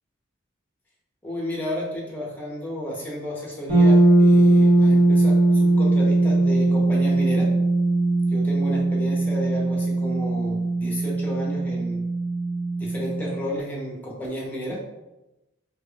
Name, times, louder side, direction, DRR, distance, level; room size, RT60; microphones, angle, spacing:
voice 1, 1.2-7.5 8.3-12.0 12.8-14.8, equal, 10° left, -4 dB, 0.7 m, -32 dB
sound 1, 3.7-13.5, right 2 dB, 90° right, 1.4 m, -20 dB
3.4 x 3.2 x 2.3 m, 0.98 s
head